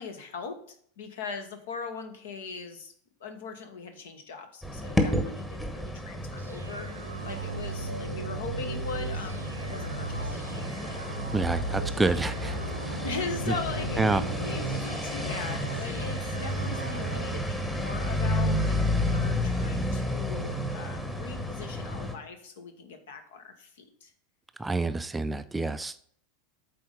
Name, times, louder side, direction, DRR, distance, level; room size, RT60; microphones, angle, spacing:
voice 1, 0.0-2.9 3.2-6.9 7.2-11.4 13.0-24.1, left 4 dB, 65° left, 7 dB, 1.2 m, -40 dB
sound 1, 4.6-22.2, left 1 dB, 10° left, 1.2 m, -31 dB
sound 2, 6.4-17.4, right 3 dB, 85° right, 0.3 m, -38 dB
voice 2, 11.3-12.6 12.9-13.0 14.0-14.2 24.6-26.0, right 3 dB, 10° right, 12 dB, 0.4 m, -28 dB
8.5 x 3.9 x 5.2 m, 0.62 s
figure-of-eight pair, 85°, 0 cm